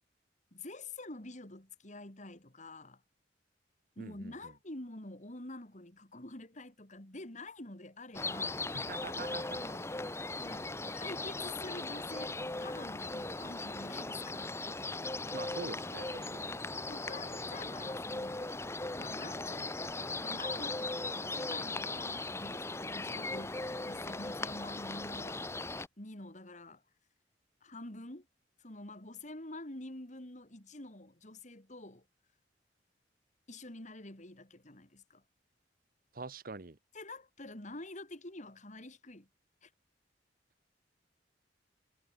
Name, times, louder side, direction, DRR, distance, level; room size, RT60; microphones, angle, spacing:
voice 1, 0.5-3.0 4.0-8.6 9.5-9.9 10.4-14.6 16.2-16.4 16.9-18.4 18.9-19.9 20.2-25.4 26.0-26.8 27.6-28.3 28.6-32.0 33.5-35.2 36.9-39.3 39.6-39.7, left 2 dB, 40° left, 3.2 m, -47 dB
voice 2, 4.0-4.3 8.7-9.6 15.3-16.5 36.1-36.8, right 3 dB, 50° right, 1.0 m, -44 dB
sound 1, 8.1-25.9, left 2 dB, 15° left, 1.2 m, -38 dB
head